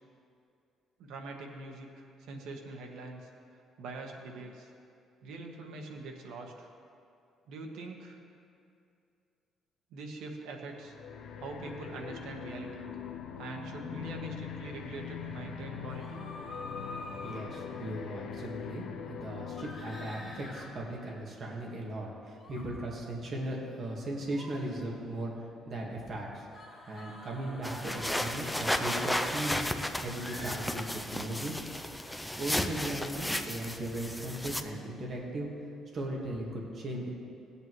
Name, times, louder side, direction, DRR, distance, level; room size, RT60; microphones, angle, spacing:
voice 1, 1.0-4.7 5.2-6.7 7.5-8.2 9.9-10.9 11.4-12.9 13.4-16.3, right 3 dB, 85° right, 2 dB, 1.2 m, -43 dB
sound 1, 10.8-21.4, left 7 dB, 60° left, 0.7 m, -42 dB
sound 2, 15.9-17.4 19.6-20.6 22.4-22.6 24.2-24.5 26.5-28.4 30.2-30.5, left 2 dB, 20° left, 2.2 m, -46 dB
voice 2, 16.9-25.3 25.7-26.4 26.9-29.7 30.0-31.5 32.4-35.5 35.9-37.1, right 1 dB, 40° right, -2 dB, 1.6 m, -37 dB
sound 3, 27.6-34.6, left 1 dB, 5° left, 0.4 m, -34 dB
16.5 x 8.5 x 3.1 m, 2.5 s
cardioid pair, 155°, 0 cm